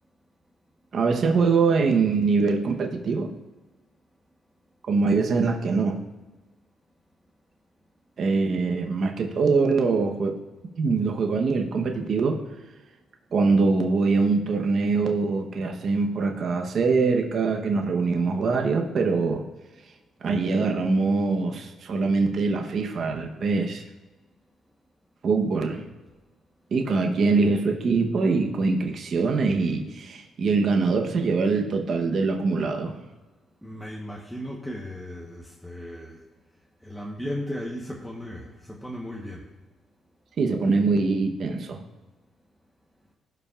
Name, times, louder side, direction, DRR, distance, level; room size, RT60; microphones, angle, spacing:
voice 1, 0.9-3.3 4.9-6.0 8.2-10.4 10.8-12.4 13.3-19.4 20.2-23.8 25.2-25.8 26.7-33.0 40.4-41.8, right 4 dB, 55° right, 2 dB, 1.0 m, -23 dB
voice 2, 33.6-36.2 36.8-39.5, equal, ahead, -2 dB, 1.1 m, -36 dB
16.5 x 5.6 x 2.5 m, 1.2 s
cardioid pair, 90°, 0 cm